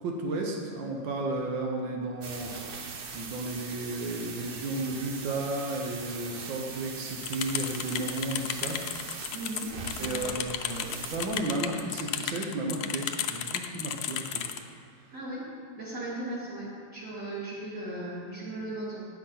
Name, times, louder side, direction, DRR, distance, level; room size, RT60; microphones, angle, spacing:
voice 1, 0.0-2.8 3.1-8.8 9.1-9.2 10.0-14.3, right 2 dB, 85° right, 1 dB, 1.8 m, -33 dB
sound 1, 2.2-11.4, right 4 dB, 70° right, 0.5 m, -41 dB
sound 2, 7.2-14.6, left 9 dB, 70° left, 1.0 m, -34 dB
voice 2, 9.3-10.3 15.1-15.4 15.7-19.0, right 1 dB, 40° right, -8 dB, 3.2 m, -37 dB
9.3 x 7.9 x 5.7 m, 2.1 s
omnidirectional pair, 2.0 m